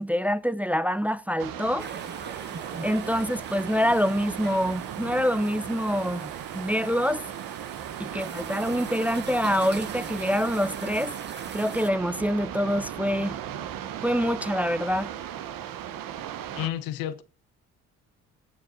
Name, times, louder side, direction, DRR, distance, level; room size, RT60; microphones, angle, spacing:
voice 1, 0.0-1.9 2.8-7.2 8.0-11.1 11.5-13.4 14.0-15.1, equal, 5° right, 0.6 m, -26 dB
sound 1, 1.4-16.7, right 10 dB, 70° right, 1.1 m, -37 dB
sound 2, 1.8-11.9, right 5 dB, 30° right, 1.2 m, -43 dB
voice 2, 16.6-17.2, left 12 dB, 80° left, 1.0 m, -30 dB
18.0 x 6.5 x 4.0 m
hypercardioid pair, 55°, 35 cm